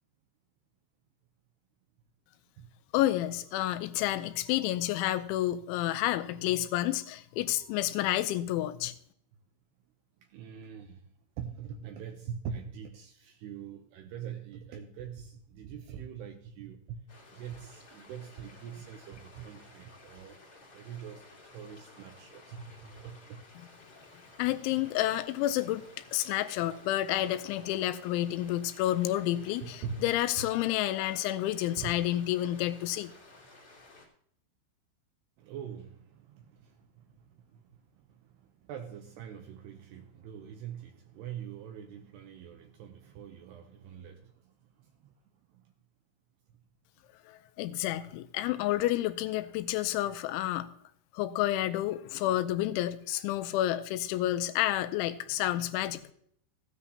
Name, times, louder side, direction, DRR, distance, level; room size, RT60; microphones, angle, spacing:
voice 1, 2.9-8.9 24.4-25.8 26.1-33.1 47.3-50.7 51.1-56.0, left 14 dB, 85° left, 11 dB, 3.0 m, -30 dB
voice 2, 10.2-11.1 11.4-17.1 17.3-20.4 20.7-23.4 29.6-30.1 30.4-30.5 31.8-32.0 35.4-45.1 45.5-45.7, right 7 dB, 80° right, 5 dB, 2.5 m, -44 dB
sound 1, 17.1-34.1, left 2 dB, 35° left, 1.7 m, -55 dB
15.5 x 9.8 x 2.8 m, 0.65 s
omnidirectional pair, 5.4 m